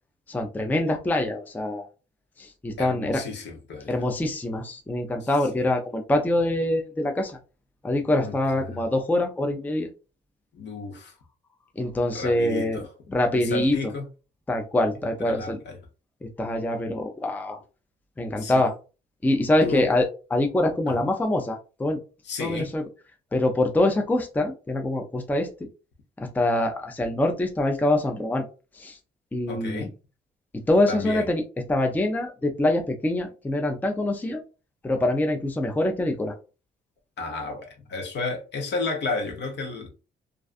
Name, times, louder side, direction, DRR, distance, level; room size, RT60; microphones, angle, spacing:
voice 1, 0.3-1.9 2.4-3.2 3.9-7.4 7.8-9.9 11.8-12.8 13.1-13.9 14.5-15.6 16.2-17.6 18.2-18.7 19.2-22.0 22.4-22.8 23.3-25.5 26.3-28.4 28.7-29.0 29.3-29.9 30.7-31.4 31.7-34.4 34.8-36.4, left 1 dB, 10° left, 0.4 m, -24 dB
voice 2, 2.8-4.0 5.2-5.3 8.2-8.4 8.7-8.8 10.5-11.1 12.1-12.9 13.3-14.1 15.2-15.8 18.4-18.6 19.6-19.9 20.9-21.1 22.3-22.7 29.5-29.9 30.9-31.2 37.2-39.9, left 3 dB, 60° left, 0.8 m, -32 dB
2.5 x 2.3 x 2.4 m
cardioid pair, 90°, 20 cm